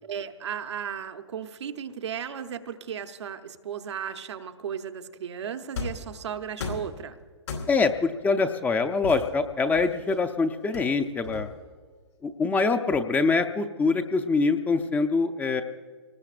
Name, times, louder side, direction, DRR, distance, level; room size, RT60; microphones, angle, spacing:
voice 1, 0.0-7.2, right 8 dB, 70° right, 7 dB, 0.9 m, -35 dB
sound 1, 5.8-6.1 6.6-7.0 7.5-8.0 9.0-10.2 10.7-11.7, left 4 dB, 75° left, 4.2 m, -36 dB
voice 2, 7.7-11.5 12.2-15.6, left 4 dB, 10° left, 8 dB, 0.6 m, -24 dB
25.0 x 19.5 x 2.5 m, 1.5 s
hypercardioid pair, 130°, 15 cm